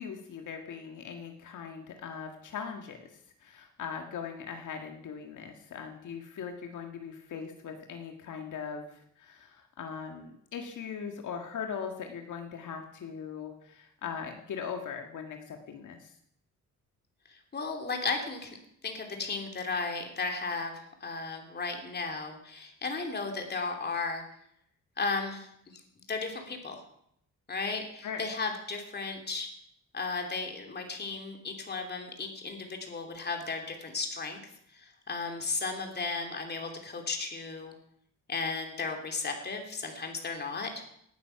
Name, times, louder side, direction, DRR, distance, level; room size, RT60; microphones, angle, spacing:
voice 1, 0.0-16.1 28.0-28.2, left 6 dB, 70° left, 4 dB, 1.8 m, -40 dB
voice 2, 17.5-18.5 18.8-24.2 25.0-25.5 26.1-26.8 27.5-29.5 29.9-34.4 34.7-37.7 38.3-40.7, left 4 dB, 30° left, 4 dB, 3.0 m, -35 dB
18.0 x 12.5 x 5.9 m, 0.72 s
wide cardioid pair, 160°, 32 cm